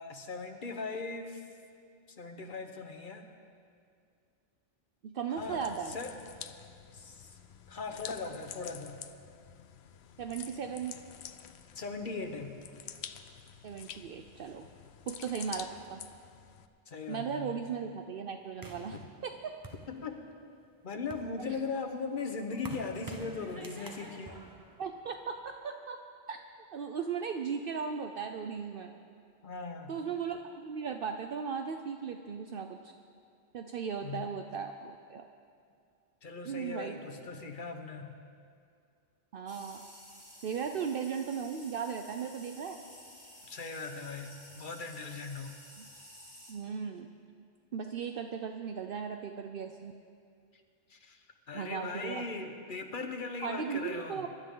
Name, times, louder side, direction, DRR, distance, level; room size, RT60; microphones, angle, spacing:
voice 1, 0.0-1.5 2.2-3.2 5.3-6.1 6.9-7.4 7.7-9.0 11.7-12.6 16.9-17.6 18.9-19.0 19.9-20.3 20.8-24.4 29.4-30.0 34.0-34.4 36.2-38.2 43.5-45.5 50.9-54.3, left 4 dB, 50° left, 5 dB, 1.3 m, -39 dB
voice 2, 5.0-5.9 10.2-11.0 13.6-14.6 15.1-16.0 17.1-19.5 24.8-26.0 26.3-26.4 26.7-28.9 29.9-32.8 33.5-35.2 36.4-37.0 39.3-39.8 40.4-42.8 45.8-45.9 46.5-47.1 47.7-49.9 51.5-52.2 53.4-54.3, right 6 dB, 60° right, 5 dB, 0.8 m, -37 dB
sound 1, 5.4-16.7, left 8 dB, 90° left, 0.9 m, -48 dB
sound 2, 18.6-20.4 20.9-25.5, right 2 dB, 20° right, 0.8 m, -48 dB
sound 3, 39.5-46.5, equal, 5° left, 3.9 m, -53 dB
24.0 x 12.0 x 3.8 m, 2.3 s
omnidirectional pair, 1.1 m